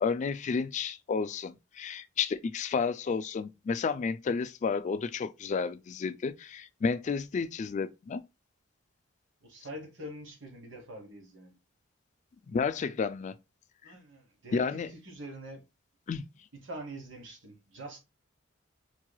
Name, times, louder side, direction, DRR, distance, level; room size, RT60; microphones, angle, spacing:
voice 1, 0.0-8.2 12.5-13.3 13.8-13.9 14.5-14.9 16.1-16.3, left 5 dB, 40° left, 0.3 m, -31 dB
voice 2, 9.4-11.6 13.8-15.6 16.6-18.0, right 1 dB, 70° right, 1.4 m, -44 dB
4.6 x 3.0 x 2.3 m
head